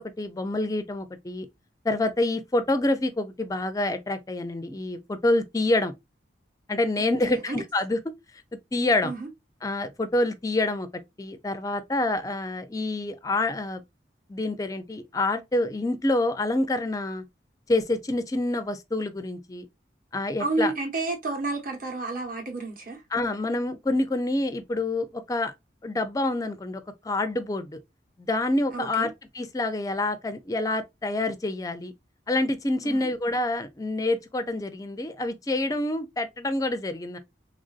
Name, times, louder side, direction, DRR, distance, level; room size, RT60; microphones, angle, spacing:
voice 1, 0.2-1.5 1.8-5.9 6.7-8.0 8.7-9.1 9.6-10.9 11.2-13.8 14.3-17.2 17.7-19.7 20.1-20.7 23.1-25.5 25.8-27.8 28.2-31.9 32.3-37.2, left 2 dB, 20° left, 0.4 m, -27 dB
voice 2, 7.2-7.6 9.0-9.3 20.4-23.0 28.7-29.1 32.8-33.1, right 3 dB, 45° right, 1.0 m, -31 dB
3.3 x 2.6 x 2.4 m
head